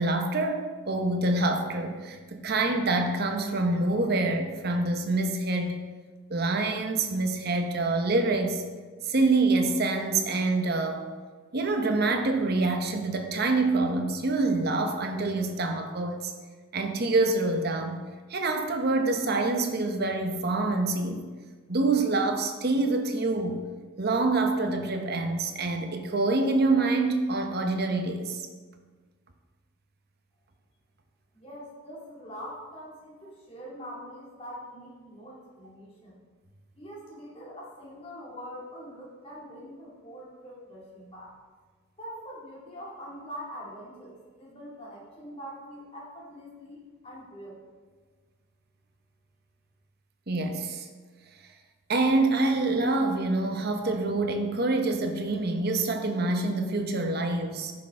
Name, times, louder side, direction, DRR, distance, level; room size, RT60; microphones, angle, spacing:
voice 1, 0.0-5.8 6.3-8.6 9.0-11.1 11.5-16.3 16.7-18.0 18.3-21.2 21.7-23.6 24.0-28.5 50.3-50.9 51.9-57.7, right 2 dB, 45° right, 5 dB, 0.8 m, -26 dB
voice 2, 31.3-36.2 36.8-41.3 42.0-47.6, equal, 25° left, -5 dB, 2.2 m, -43 dB
10.5 x 6.3 x 3.7 m, 1.4 s
head